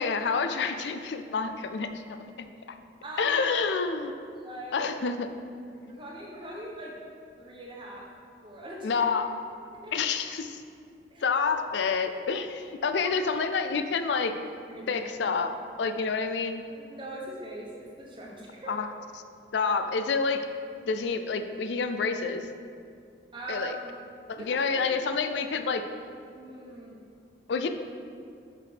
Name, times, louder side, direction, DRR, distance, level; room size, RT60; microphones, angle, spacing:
voice 1, 0.0-2.5 3.2-4.1 4.7-5.3 5.7-5.9 8.8-9.3 9.9-10.6 11.2-14.3 14.9-16.6 18.7-18.9 19.5-20.4 20.9-22.4 23.5-23.8 24.3-25.8 27.5-27.7, left 5 dB, 80° left, 8 dB, 0.4 m, -28 dB
voice 2, 3.0-3.6 4.3-5.0 5.9-6.9 7.4-8.0 8.4-9.0 9.8-9.9 11.1-11.3 13.0-13.4 13.7-13.8 14.7-15.1 16.7-18.7 19.6-19.7 23.3-23.9 24.4-24.9 26.3-27.0, right 1 dB, 25° right, -3 dB, 1.1 m, -41 dB
6.0 x 5.7 x 5.0 m, 2.3 s
head